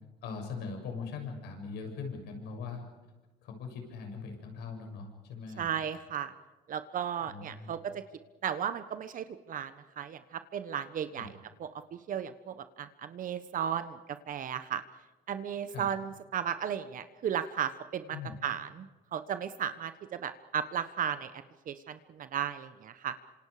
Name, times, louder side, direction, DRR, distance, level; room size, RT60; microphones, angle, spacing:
voice 1, 0.2-2.8 3.4-5.7 7.3-7.7 11.2-11.3 15.7-15.9 18.1-18.4, left 5 dB, 80° left, 4 dB, 7.2 m, -41 dB
voice 2, 5.6-6.3 6.7-8.0 8.4-11.3 11.6-14.0 14.3-14.8 15.3-18.2 18.4-21.3 21.7-23.1, right 9 dB, 55° right, 11 dB, 1.3 m, -35 dB
28.0 x 26.5 x 5.1 m, 1.2 s
cardioid pair, 110°, 17 cm